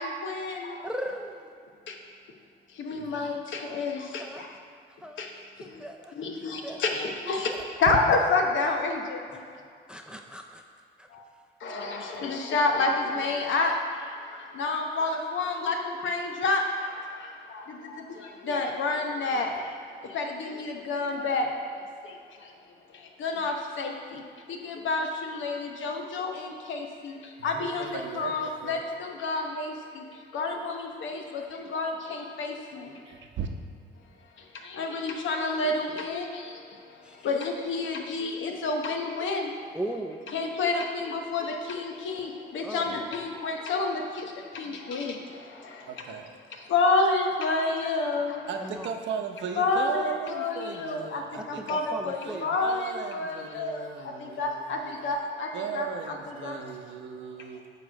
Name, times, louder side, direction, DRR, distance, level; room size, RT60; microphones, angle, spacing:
voice 1, 0.0-0.9 1.9-2.0 2.7-4.6 5.2-5.3 5.6-5.9 6.2-7.5 7.8-9.3 11.1-11.2 11.6-22.5 22.9-33.2 34.4-39.8 40.3-46.2 46.5-48.5 49.5-56.8 57.4-57.5, left 3 dB, 75° left, 3 dB, 1.0 m, -30 dB
voice 2, 0.8-1.5 4.1-4.4 5.0-5.3 5.6-6.8 7.5-7.6 7.9-8.0 9.3-9.4 9.9-10.6 11.0-11.1 37.0-37.3 39.7-40.2 42.6-42.9 48.6-48.9 51.3-52.6, right 1 dB, 5° right, 3 dB, 0.5 m, -38 dB
voice 3, 27.4-28.8 33.1-33.5 45.9-46.3 48.5-55.0 55.5-57.7, right 7 dB, 70° right, 5 dB, 0.8 m, -37 dB
9.2 x 3.1 x 6.3 m, 2.4 s
cardioid pair, 90°, 20 cm